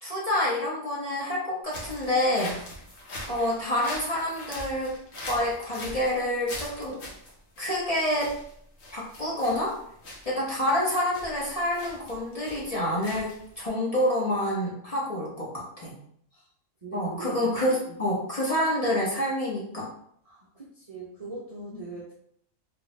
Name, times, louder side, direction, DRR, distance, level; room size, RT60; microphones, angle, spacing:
voice 1, 0.0-2.6 3.3-4.9 5.2-7.0 7.6-8.3 8.9-9.7 10.2-15.9 16.9-19.9, left 1 dB, 35° left, -6 dB, 0.8 m, -27 dB
sound 1, 1.6-13.7, left 1 dB, 60° left, 1.1 m, -42 dB
voice 2, 16.8-17.4 17.9-18.0 20.2-22.1, right 3 dB, 40° right, -5 dB, 0.5 m, -41 dB
3.3 x 2.3 x 3.1 m, 0.66 s
omnidirectional pair, 1.4 m